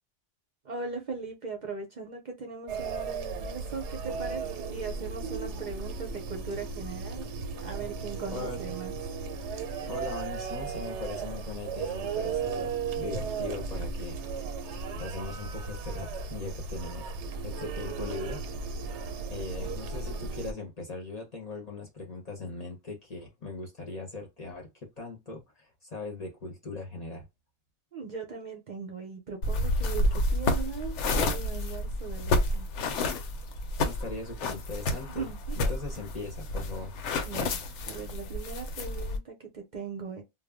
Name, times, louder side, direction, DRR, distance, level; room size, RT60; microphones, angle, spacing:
voice 1, 0.6-4.4 4.7-7.3 7.6-9.0 27.9-32.7 35.1-35.6 37.2-40.2, right 5 dB, 50° right, 0.7 m, -39 dB
sound 1, 2.7-20.5, right 5 dB, 80° right, 0.9 m, -35 dB
voice 2, 8.3-8.6 9.9-14.2 15.0-17.1 17.4-18.4 19.3-24.7 25.0-27.3 33.8-36.9, left 3 dB, 40° left, 0.7 m, -40 dB
sound 2, 29.4-39.2, left 2 dB, 85° left, 0.9 m, -30 dB
2.2 x 2.0 x 3.4 m
omnidirectional pair, 1.2 m